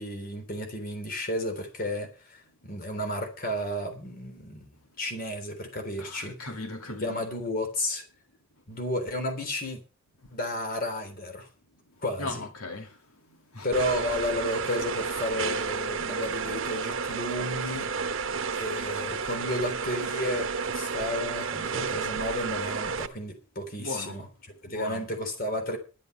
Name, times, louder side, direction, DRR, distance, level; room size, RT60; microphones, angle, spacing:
voice 1, 0.0-6.4 6.9-8.0 8.7-9.8 10.3-11.5 12.0-12.4 13.6-17.9 18.6-24.3 24.6-25.8, left 1 dB, 40° left, 3.5 m, -32 dB
voice 2, 6.0-7.2 12.2-13.0 13.3-13.7 23.8-24.2 24.6-25.0, left 2 dB, 90° left, 2.7 m, -38 dB
sound 1, 13.7-23.1, right 5 dB, 65° right, 1.1 m, -31 dB
11.5 x 10.0 x 5.7 m
head